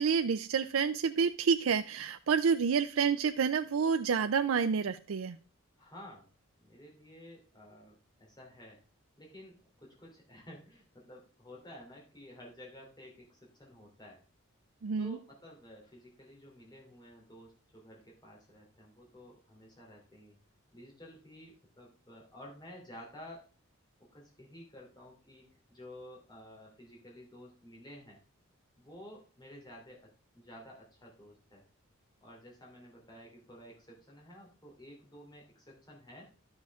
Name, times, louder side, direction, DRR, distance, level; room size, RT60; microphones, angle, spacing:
voice 1, 0.0-5.4 14.8-15.2, right 6 dB, 75° right, 8 dB, 0.4 m, -29 dB
voice 2, 5.8-6.3 6.6-7.9 8.2-8.8 9.2-14.2 15.0-20.4 20.7-23.4 24.0-28.2 28.8-30.1 30.3-31.6 32.2-36.3, equal, 20° left, -3 dB, 3.0 m, -52 dB
12.0 x 6.3 x 3.5 m, 0.37 s
head